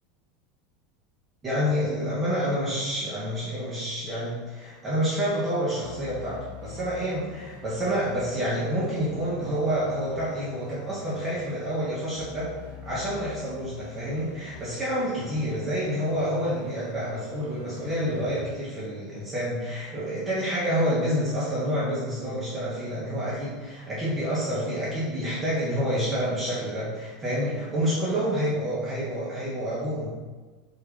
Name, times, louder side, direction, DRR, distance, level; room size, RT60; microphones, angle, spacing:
voice 1, 1.4-12.5 12.8-30.1, equal, 25° right, -8 dB, 1.1 m, -28 dB
sound 1, 5.8-18.5, left 3 dB, 75° left, 0.7 m, -45 dB
3.6 x 2.8 x 3.8 m, 1.4 s
figure-of-eight pair, 80°, 0 cm